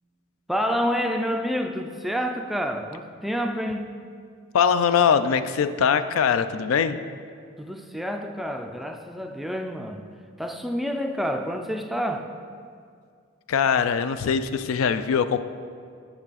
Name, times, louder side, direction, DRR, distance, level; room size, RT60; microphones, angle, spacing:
voice 1, 0.5-4.0 7.6-10.1 10.4-12.3, equal, ahead, 5 dB, 0.3 m, -28 dB
voice 2, 4.5-7.0 13.5-15.4, left 7 dB, 75° left, 11 dB, 0.4 m, -22 dB
8.7 x 6.5 x 4.1 m, 2.2 s
head